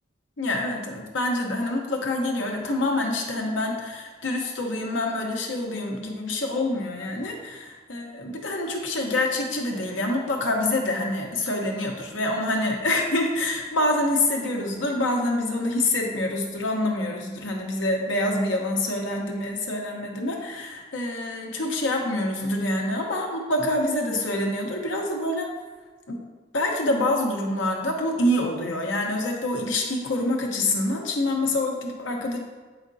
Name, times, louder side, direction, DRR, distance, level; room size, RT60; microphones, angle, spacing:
voice 1, 0.4-25.5 26.1-26.2 26.5-32.4, left 1 dB, 90° left, 1 dB, 1.0 m, -26 dB
7.3 x 5.0 x 2.7 m, 1.4 s
head